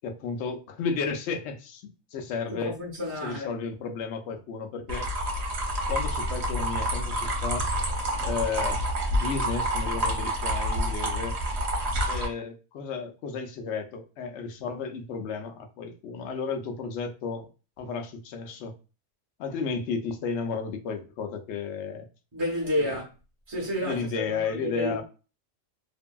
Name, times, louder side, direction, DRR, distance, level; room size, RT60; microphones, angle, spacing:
voice 1, 0.0-2.8 3.2-5.1 5.9-7.7 8.2-8.8 9.1-11.4 12.1-17.5 17.8-18.8 19.4-22.0 22.8-23.0 23.8-25.0, left 5 dB, 70° left, 0.8 m, -33 dB
voice 2, 2.6-3.5 22.3-23.1 23.5-25.0, left 1 dB, 25° right, 0.8 m, -30 dB
sound 1, 4.9-12.2, equal, 60° right, 1.0 m, -28 dB
2.7 x 2.6 x 2.2 m
omnidirectional pair, 1.3 m